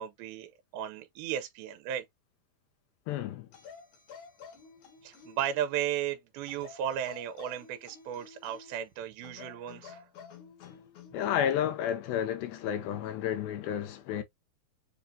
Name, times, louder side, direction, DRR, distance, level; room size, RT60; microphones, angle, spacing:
voice 1, 0.0-2.0 5.0-10.1, right 10 dB, 80° right, 2.5 m, -35 dB
voice 2, 3.1-3.5 10.6-10.8 11.1-14.2, left 10 dB, 85° left, 2.4 m, -31 dB
sound 1, 3.5-5.8 6.5-8.8 9.2-11.4 12.5-12.8, left 7 dB, 65° left, 2.0 m, -51 dB
7.2 x 2.4 x 2.6 m
omnidirectional pair, 4.4 m